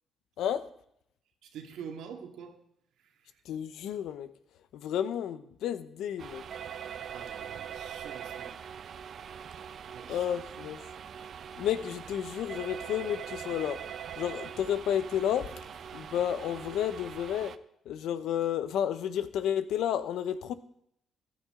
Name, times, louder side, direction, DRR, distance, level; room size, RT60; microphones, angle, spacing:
voice 1, 1.4-2.6 3.0-3.4 7.1-8.6 9.8-10.3, right 7 dB, 85° right, 3 dB, 2.1 m, -46 dB
voice 2, 3.5-4.3 4.7-6.4 10.1-10.8 11.6-13.8 14.2-15.5 15.9-17.5 17.9-20.5, left 10 dB, 80° left, 12 dB, 0.9 m, -31 dB
sound 1, 6.2-17.6, right 8 dB, 60° right, 0.7 m, -42 dB
14.5 x 11.5 x 3.8 m, 0.73 s
cardioid pair, 90°, 0 cm